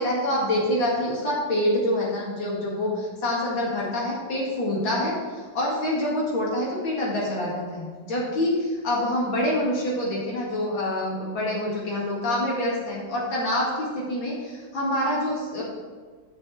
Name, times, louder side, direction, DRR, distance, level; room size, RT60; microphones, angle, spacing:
voice 1, 0.0-15.6, left 1 dB, 75° left, -5 dB, 2.7 m, -26 dB
6.9 x 5.6 x 7.3 m, 1.5 s
omnidirectional pair, 2.1 m